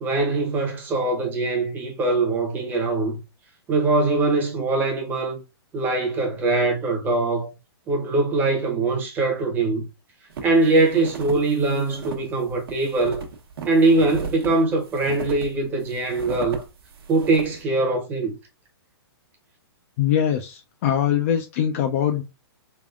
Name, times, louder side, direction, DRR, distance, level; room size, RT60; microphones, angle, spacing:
voice 1, 0.0-3.2 3.7-5.4 5.7-7.5 7.9-9.8 10.4-13.2 13.6-16.6 17.1-18.3, right 3 dB, 15° right, 0.8 m, -22 dB
sound 1, 10.3-17.6, right 5 dB, 60° right, 1.0 m, -37 dB
voice 2, 20.0-22.2, left 9 dB, 35° left, 0.4 m, -22 dB
3.4 x 3.4 x 2.4 m
hypercardioid pair, 155°, 13 cm